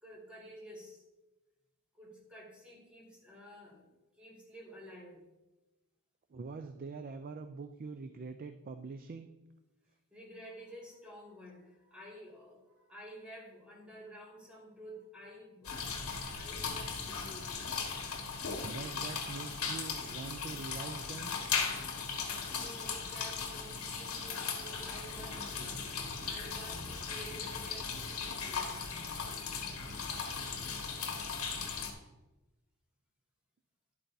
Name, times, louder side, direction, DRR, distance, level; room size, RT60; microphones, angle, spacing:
voice 1, 0.0-1.0 1.9-3.9 4.2-5.2 10.1-17.6 22.5-25.8 26.2-28.8, equal, 5° right, -4 dB, 2.1 m, -51 dB
voice 2, 6.3-9.3 18.6-21.3, right 4 dB, 40° right, 8 dB, 0.4 m, -44 dB
sound 1, 15.6-31.9, left 5 dB, 75° left, 1.4 m, -38 dB
11.5 x 8.4 x 2.7 m, 1.1 s
head